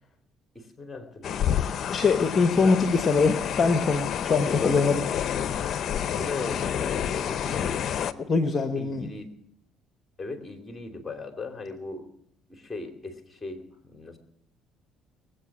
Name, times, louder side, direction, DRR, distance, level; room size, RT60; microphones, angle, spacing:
voice 1, 0.5-1.9 2.6-2.9 4.5-5.0 6.1-9.3 10.2-12.1 12.5-14.2, left 3 dB, 20° left, 4 dB, 2.8 m, -38 dB
sound 1, 1.2-8.1, left 9 dB, 55° left, 0.7 m, -29 dB
voice 2, 1.9-5.0 8.3-9.1, left 4 dB, 35° left, 8 dB, 1.1 m, -23 dB
21.0 x 8.4 x 6.1 m, 0.72 s
supercardioid pair, 90°, 0 cm